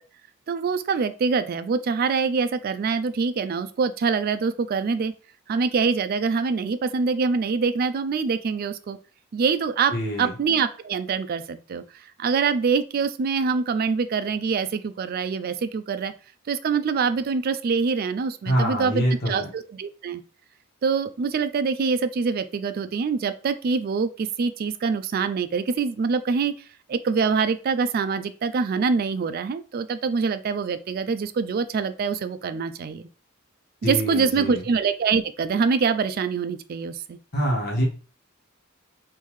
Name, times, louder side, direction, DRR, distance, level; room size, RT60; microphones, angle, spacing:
voice 1, 0.5-5.1 5.5-9.0 9.3-9.9 10.2-16.1 16.5-20.2 20.8-33.1 33.8-37.2, right 5 dB, 45° right, 11 dB, 0.3 m, -25 dB
voice 2, 9.9-10.3 18.4-19.5 33.8-34.6 37.3-37.8, equal, 50° left, -3 dB, 1.4 m, -25 dB
3.6 x 2.6 x 3.1 m, 0.37 s
head